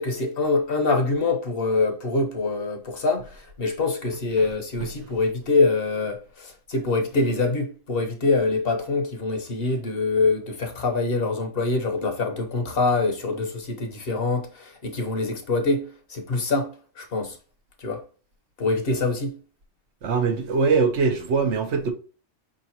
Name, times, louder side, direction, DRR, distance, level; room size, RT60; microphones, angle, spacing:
voice 1, 0.0-17.4 17.8-18.0 18.6-19.4, left 3 dB, 55° left, 1.2 m, -25 dB
voice 2, 20.0-21.9, right 4 dB, 75° right, 1.2 m, -22 dB
5.1 x 3.7 x 2.8 m
omnidirectional pair, 1.2 m